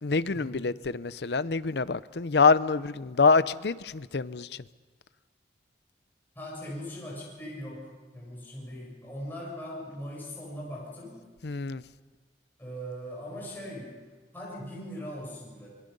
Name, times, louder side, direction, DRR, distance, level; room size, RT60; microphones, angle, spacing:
voice 1, 0.0-4.5 11.4-11.8, left 4 dB, 70° left, 16 dB, 0.7 m, -25 dB
voice 2, 6.4-11.2 12.6-14.0 14.3-15.8, equal, 10° left, -5 dB, 7.4 m, -40 dB
27.0 x 22.5 x 5.4 m, 1.4 s
head